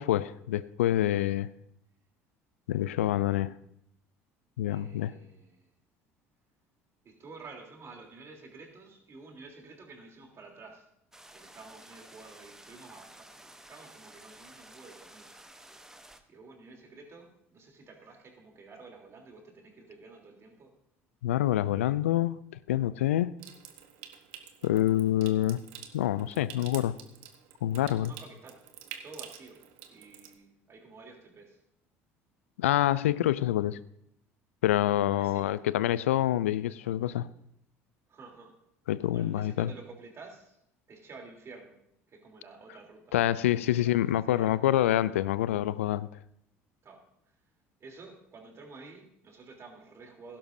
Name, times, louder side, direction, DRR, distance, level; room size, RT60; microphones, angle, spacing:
voice 1, 0.0-1.5 2.7-3.5 4.6-5.1 21.2-22.4 22.7-23.3 24.6-25.6 25.9-27.0 27.6-28.1 32.6-33.8 34.6-37.3 38.9-39.7 43.1-46.1, left 13 dB, 85° left, 18 dB, 0.4 m, -26 dB
voice 2, 4.7-5.7 7.0-10.9 11.3-15.3 16.3-20.8 27.7-28.7 29.0-31.6 34.8-35.5 38.1-38.6 39.1-40.6 40.9-41.8 42.1-43.2 43.6-43.9 44.3-44.5 46.8-47.4 47.8-50.4, right 3 dB, 40° right, 1 dB, 3.4 m, -51 dB
sound 1, 11.1-16.2, right 1 dB, 5° right, 1.0 m, -52 dB
Water tap faucet / Sink (filling or washing) / Trickle dribble, 23.4-30.3, right 10 dB, 70° right, 1.1 m, -48 dB
16.5 x 11.5 x 2.7 m, 0.76 s
hypercardioid pair, 65°, 7 cm